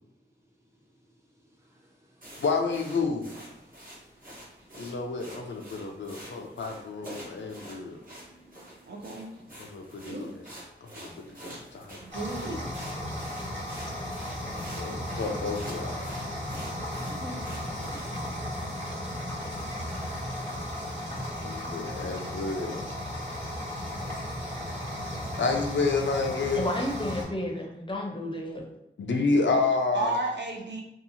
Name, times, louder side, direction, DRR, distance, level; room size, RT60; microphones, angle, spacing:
voice 1, 0.2-2.4 3.5-5.2 8.4-8.5 11.7-11.9, equal, 15° right, -3 dB, 0.7 m, -63 dB
sound 1, 2.2-18.4, right 1 dB, 50° right, 1.1 m, -47 dB
voice 2, 2.4-3.3 4.8-8.0 9.6-10.4 10.9-12.0 14.8-16.1 21.4-22.9 25.4-26.6 29.0-30.1, left 4 dB, 80° left, 3 dB, 0.4 m, -29 dB
voice 3, 8.9-9.3 10.1-10.3 12.0-12.9 17.1-17.4 29.9-30.8, right 2 dB, 65° right, 1 dB, 0.5 m, -33 dB
sound 2, 12.1-27.2, left 1 dB, 90° right, 1.4 m, -35 dB
voice 4, 26.5-28.6, left 1 dB, 25° left, 0 dB, 0.6 m, -32 dB
2.8 x 2.4 x 2.6 m, 0.82 s
wide cardioid pair, 75°, 19 cm